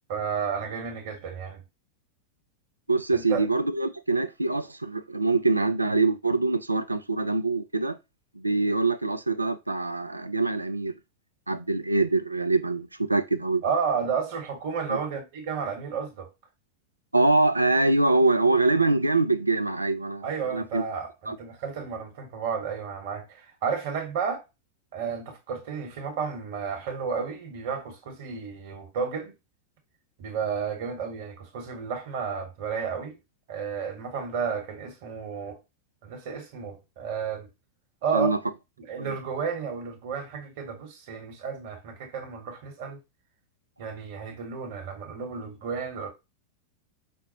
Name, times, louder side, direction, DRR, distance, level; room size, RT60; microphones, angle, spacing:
voice 1, 0.1-1.6 3.1-3.4 13.6-16.3 20.2-24.4 24.9-29.3 30.2-33.2 33.5-35.6 36.0-37.5 38.0-38.3 38.8-43.0 43.8-46.1, right 6 dB, 50° right, 1.1 m, -32 dB
voice 2, 2.9-8.0 8.4-10.9 11.5-13.6 14.9-15.0 17.1-20.8 21.3-21.4 38.1-38.4 39.0-39.1, right 3 dB, 85° right, 0.3 m, -24 dB
5.2 x 2.0 x 2.8 m
figure-of-eight pair, 90°, 0 cm